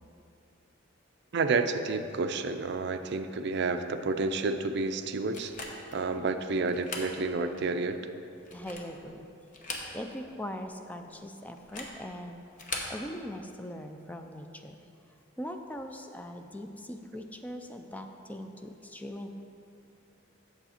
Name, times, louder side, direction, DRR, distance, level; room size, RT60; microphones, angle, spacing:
voice 1, 1.3-8.0, right 3 dB, 55° right, 8 dB, 0.4 m, -30 dB
sound 1, 5.3-6.0 6.7-7.1 7.6-7.7 8.4-9.0 9.5-10.3 10.5-10.6 11.6-12.0 12.5-13.0, left 3 dB, 40° left, 0.9 m, -39 dB
voice 2, 8.5-9.3 9.9-12.4 12.9-14.8 15.4-19.3, equal, 10° left, 5 dB, 0.4 m, -41 dB
8.1 x 7.2 x 4.2 m, 2.7 s
head